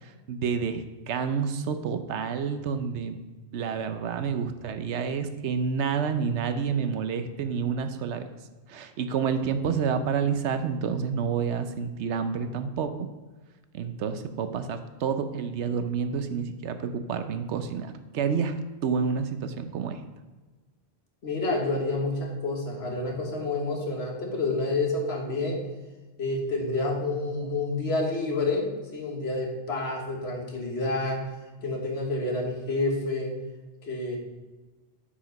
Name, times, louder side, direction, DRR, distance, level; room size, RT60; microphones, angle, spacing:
voice 1, 0.0-3.2 3.5-8.2 8.7-12.9 13.7-20.0, right 6 dB, 85° right, 9 dB, 1.0 m, -29 dB
voice 2, 21.2-25.6 26.2-31.3 31.6-33.4 33.8-34.2, left 2 dB, 70° left, 0 dB, 1.6 m, -29 dB
7.1 x 5.0 x 5.1 m, 1.2 s
omnidirectional pair, 1.1 m